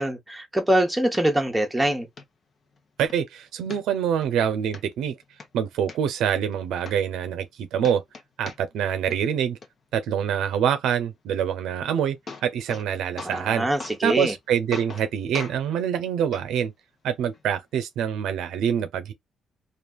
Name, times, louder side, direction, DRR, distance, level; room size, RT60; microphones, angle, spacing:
voice 1, 0.0-2.1 13.2-14.3, right 1 dB, 5° right, 0.9 m, -24 dB
sound 1, 1.1-1.2 1.7-1.8 2.2-2.3 2.7-3.2 3.7-4.3 4.7-4.8 5.2-6.0 6.5-6.6 6.8-7.5 7.8-8.9 9.1-9.7 11.7-11.8 12.0-12.9 13.2-13.5 13.8-14.4 14.7-15.1 15.3-15.6 16.3-16.4 17.3-17.4, left 4 dB, 45° left, 0.8 m, -39 dB
voice 2, 3.0-5.2 5.5-8.0 8.4-9.6 9.9-12.2 12.4-13.7 14.0-16.7 17.0-19.1, right 8 dB, 85° right, 0.5 m, -25 dB
3.3 x 2.4 x 2.3 m
cardioid pair, 90°, 0 cm